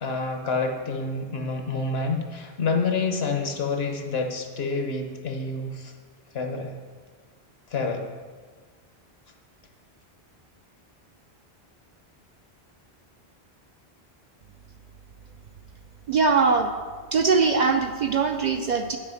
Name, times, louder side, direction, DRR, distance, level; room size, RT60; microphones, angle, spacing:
voice 1, 0.0-5.9 6.3-6.7 7.7-8.0, left 4 dB, 75° left, 4 dB, 1.2 m, -28 dB
voice 2, 16.1-16.7 17.1-19.0, right 4 dB, 55° right, 5 dB, 0.5 m, -21 dB
8.8 x 4.9 x 6.2 m, 1.5 s
omnidirectional pair, 1.1 m